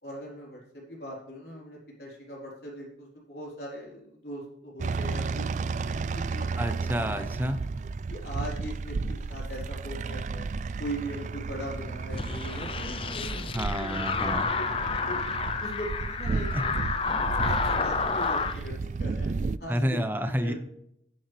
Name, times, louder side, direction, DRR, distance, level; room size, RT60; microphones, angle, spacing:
voice 1, 0.0-5.5 5.7-7.1 8.1-10.5 10.8-14.7 15.0-15.2 15.6-16.6 17.1-19.3 19.6-20.0 20.4-20.5, equal, 60° left, -3 dB, 4.0 m, -40 dB
sound 1, 4.8-19.6, right 4 dB, 40° right, 0.3 m, -33 dB
voice 2, 6.6-7.6 13.5-14.5 16.5-16.7 19.7-20.5, equal, 10° right, 8 dB, 0.8 m, -29 dB
sound 2, 12.1-18.6, left 4 dB, 30° left, 0.7 m, -30 dB
10.0 x 9.8 x 3.5 m, 0.74 s
head